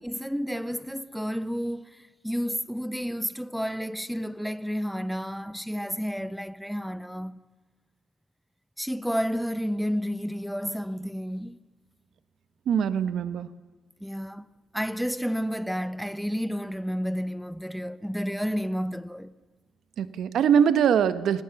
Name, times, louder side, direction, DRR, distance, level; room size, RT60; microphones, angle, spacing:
voice 1, 0.0-7.4 8.8-11.6 14.0-14.5 14.7-19.3, equal, ahead, 0.9 m, -31 dB
voice 2, 12.7-13.5 20.0-21.4, right 8 dB, 70° right, 1.2 m, -22 dB
29.0 x 18.5 x 7.1 m
cardioid pair, 90°, 0 cm